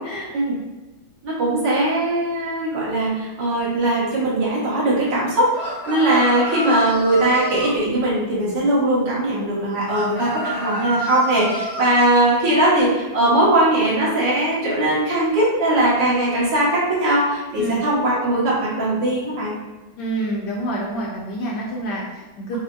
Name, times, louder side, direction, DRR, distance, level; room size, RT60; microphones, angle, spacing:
voice 1, 1.2-19.5 22.5-22.6, right 1 dB, 65° right, -8 dB, 1.8 m, -20 dB
sound 1, 5.5-7.8 9.9-11.9, equal, 45° left, 0.9 m, -28 dB
voice 2, 20.0-22.6, right 1 dB, 70° left, -3 dB, 1.1 m, -27 dB
5.0 x 2.5 x 2.2 m, 1.2 s
omnidirectional pair, 2.1 m